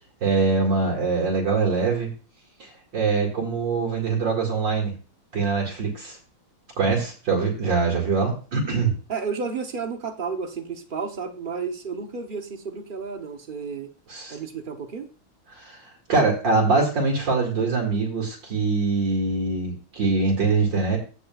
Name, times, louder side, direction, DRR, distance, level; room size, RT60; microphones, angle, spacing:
voice 1, 0.2-2.1 2.6-4.9 5.3-6.2 6.8-8.9 14.1-14.4 15.5-15.8 16.1-21.0, right 4 dB, 60° right, -1 dB, 2.8 m, -23 dB
voice 2, 9.1-13.9 14.3-15.1, right 5 dB, 75° right, 5 dB, 0.4 m, -32 dB
15.5 x 6.6 x 2.4 m, 0.36 s
omnidirectional pair, 2.3 m